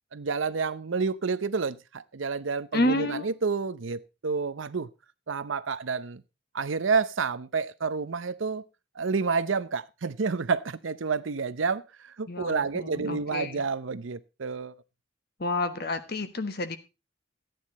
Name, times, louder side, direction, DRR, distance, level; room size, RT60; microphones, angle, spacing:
voice 1, 0.1-4.9 5.3-6.2 6.5-8.6 9.0-14.7, right 4 dB, 75° right, 0.7 m, -29 dB
voice 2, 2.7-3.3 12.3-13.6 15.4-16.8, left 2 dB, 50° left, 1.3 m, -29 dB
14.0 x 9.4 x 4.1 m
head